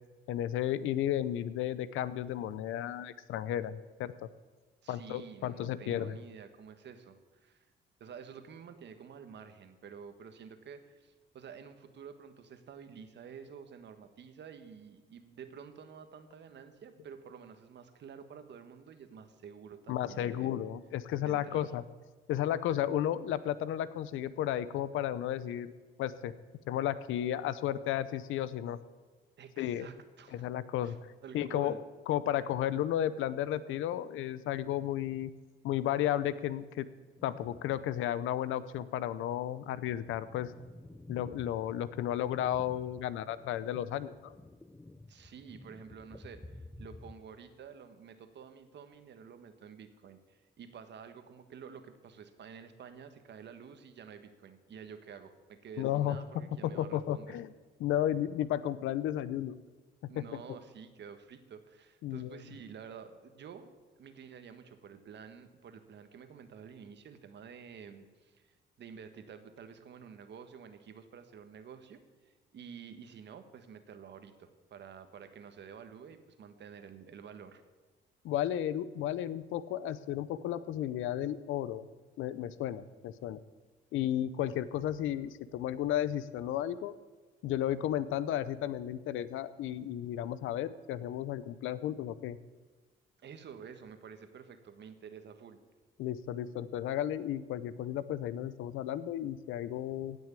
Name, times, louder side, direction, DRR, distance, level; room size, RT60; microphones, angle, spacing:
voice 1, 0.3-4.1 4.9-6.2 19.9-21.8 22.3-26.3 26.7-28.8 29.6-29.9 30.3-31.0 31.3-31.8 32.1-35.3 35.6-36.9 37.2-40.5 41.1-44.3 55.8-56.2 56.6-57.5 57.8-59.6 60.2-60.3 62.0-62.4 78.2-81.9 82.2-83.4 83.9-86.9 87.4-92.4 96.0-100.2, left 11 dB, 85° left, 16 dB, 0.7 m, -33 dB
voice 2, 4.8-7.7 8.0-20.5 21.2-21.7 29.4-30.5 30.8-31.0 31.2-31.8 45.1-57.4 60.1-63.7 64.0-77.6 93.2-95.6, right 7 dB, 60° right, 9 dB, 1.4 m, -50 dB
sound 1, 37.2-38.1 38.5-38.6 39.2-47.2, left 2 dB, 10° left, 0.6 m, -52 dB
16.5 x 6.3 x 8.4 m, 1.3 s
cardioid pair, 90°, 20 cm